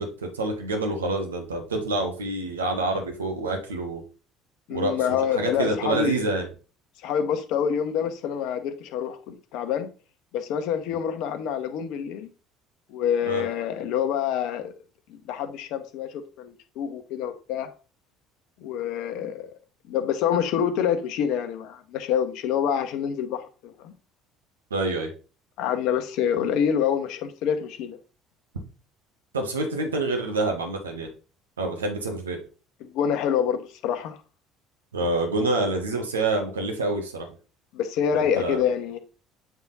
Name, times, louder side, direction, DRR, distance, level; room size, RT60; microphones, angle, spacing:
voice 1, 0.0-4.0 4.7-6.5 13.2-13.4 24.7-25.1 29.3-31.1 31.6-32.4 34.9-37.3 38.1-38.6, right 2 dB, 90° right, 1.2 m, -27 dB
voice 2, 4.7-6.2 7.0-9.9 10.3-12.3 12.9-14.7 15.1-17.7 18.6-19.5 19.9-23.9 25.6-28.0 32.8-34.2 37.7-39.0, left 8 dB, 65° left, 0.9 m, -26 dB
8.0 x 3.6 x 4.0 m
hypercardioid pair, 60°, 0 cm